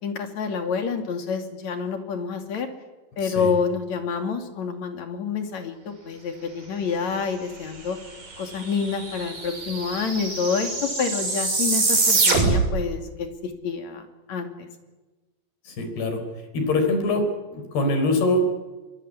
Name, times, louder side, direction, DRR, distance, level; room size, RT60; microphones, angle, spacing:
voice 1, 0.0-2.7 3.2-8.0 8.4-14.0 14.3-14.7, left 5 dB, 50° left, 6 dB, 3.6 m, -28 dB
voice 2, 3.2-3.5 15.7-17.3 17.5-18.4, left 2 dB, 85° left, 7 dB, 6.0 m, -24 dB
sound 1, 8.3-8.4 8.6-12.8, right 3 dB, 60° right, 8.2 m, -24 dB
24.0 x 23.0 x 9.8 m, 1.2 s
omnidirectional pair, 4.5 m